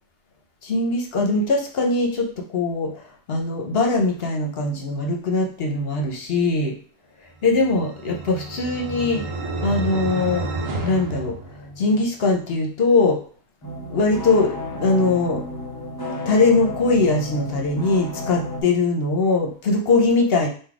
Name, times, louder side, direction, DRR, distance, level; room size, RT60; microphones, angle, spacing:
voice 1, 0.6-6.7 7.4-9.2 9.6-10.5 10.8-13.2 13.9-15.4 16.2-20.5, left 3 dB, 55° left, 2 dB, 0.9 m, -21 dB
sound 1, 7.5-12.1, right 2 dB, 80° right, 1.1 m, -30 dB
sound 2, 13.6-18.6, left 2 dB, 20° left, 0.7 m, -32 dB
3.9 x 2.6 x 4.7 m, 0.43 s
omnidirectional pair, 1.4 m